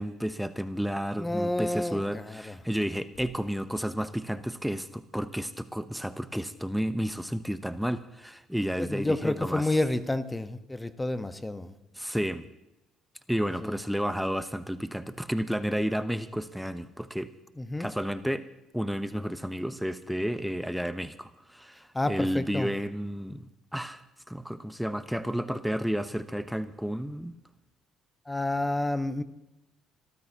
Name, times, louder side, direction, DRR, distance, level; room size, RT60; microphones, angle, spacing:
voice 1, 0.0-9.7 12.0-12.5 13.3-17.3 17.8-18.4 18.7-23.4 23.7-24.0 24.3-27.3, equal, ahead, 12 dB, 0.9 m, -31 dB
voice 2, 1.1-2.6 8.8-11.7 13.6-13.8 17.6-17.9 21.9-22.7 28.3-29.2, left 2 dB, 15° left, 11 dB, 1.2 m, -30 dB
26.0 x 13.5 x 3.0 m, 0.92 s
hypercardioid pair, 50°, 0 cm